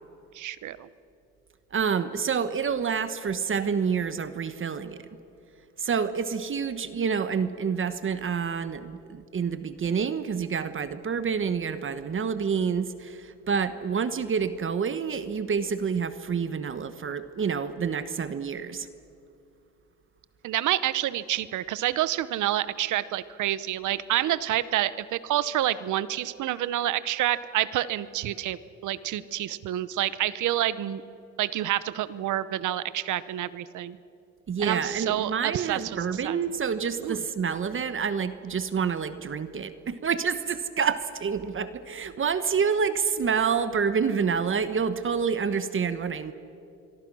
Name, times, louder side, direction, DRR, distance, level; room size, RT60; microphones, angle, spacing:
voice 1, 0.3-0.9 20.4-31.0 31.4-34.0 34.6-36.4 37.0-37.2, right 13 dB, 80° right, 16 dB, 0.9 m, -28 dB
voice 2, 1.7-5.1 5.8-18.9 34.5-46.3, right 6 dB, 45° right, 12 dB, 1.1 m, -28 dB
26.5 x 23.0 x 6.2 m, 2.5 s
cardioid pair, 90°, 30 cm